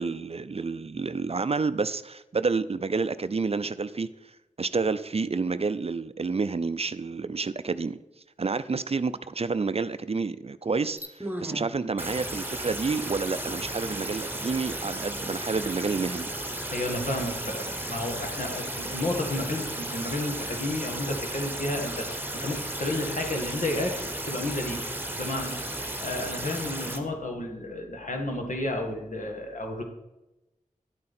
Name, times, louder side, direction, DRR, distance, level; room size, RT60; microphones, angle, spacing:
voice 1, 0.0-4.1 4.6-8.0 8.4-16.3, right 4 dB, 45° right, 0.4 m, -29 dB
sound 1, 11.0-11.7 12.0-27.0, right 1 dB, 15° right, 1.2 m, -34 dB
voice 2, 16.7-24.0 24.3-24.8 25.2-25.6 26.0-29.8, left 1 dB, 65° left, 2.0 m, -32 dB
10.5 x 8.7 x 4.3 m
wide cardioid pair, 70°, 14 cm